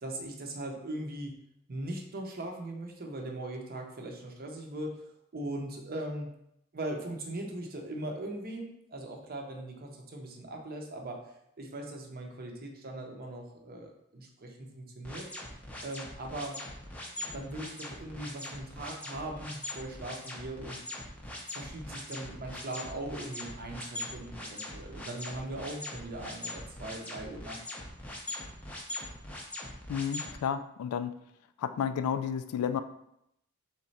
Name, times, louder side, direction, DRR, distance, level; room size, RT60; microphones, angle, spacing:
voice 1, 0.0-1.3 1.7-4.9 5.3-6.3 6.7-11.2 11.6-15.3 15.8-16.6 17.2-20.8 21.5-27.6, right 1 dB, 45° right, 1 dB, 0.7 m, -40 dB
sound 1, 15.0-30.3, left 1 dB, 5° left, 0.6 m, -41 dB
voice 2, 29.9-31.1 31.6-32.8, left 8 dB, 85° left, 11 dB, 0.3 m, -31 dB
3.6 x 3.2 x 4.1 m, 0.78 s
head